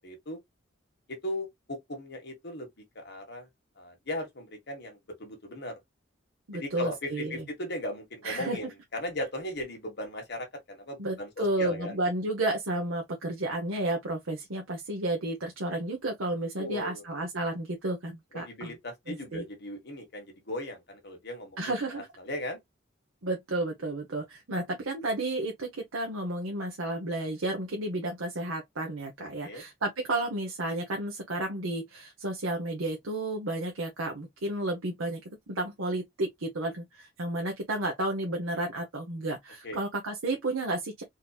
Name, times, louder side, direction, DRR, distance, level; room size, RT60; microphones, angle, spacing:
voice 1, 0.0-0.4 1.1-2.7 2.9-3.5 3.8-5.8 6.5-12.0 16.6-17.0 18.3-22.6 29.4-29.6 39.6-39.8, left 1 dB, 55° left, 1.4 m, -38 dB
voice 2, 6.5-7.4 8.2-8.6 11.0-18.7 19.1-19.4 21.6-22.1 23.2-35.2 35.5-41.0, right 2 dB, 85° right, 0.9 m, -32 dB
3.9 x 2.8 x 2.3 m
head